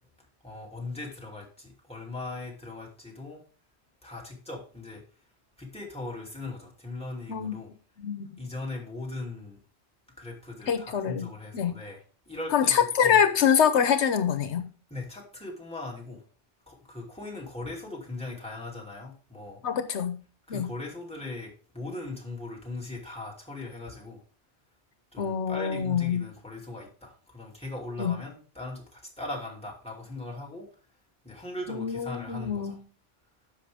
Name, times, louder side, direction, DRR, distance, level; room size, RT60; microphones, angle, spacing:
voice 1, 0.4-3.4 4.0-5.0 5.6-7.7 8.4-9.6 10.2-12.7 13.0-13.2 14.9-16.2 16.7-19.6 20.5-24.2 25.1-30.7 31.2-32.8, left 2 dB, 5° left, 2.7 m, -39 dB
voice 2, 8.0-8.3 10.7-11.3 11.5-11.7 12.5-14.7 19.6-20.2 20.5-20.7 25.2-26.2 28.0-28.1 31.7-32.8, left 7 dB, 90° left, 1.2 m, -25 dB
10.0 x 6.7 x 3.5 m
omnidirectional pair, 1.1 m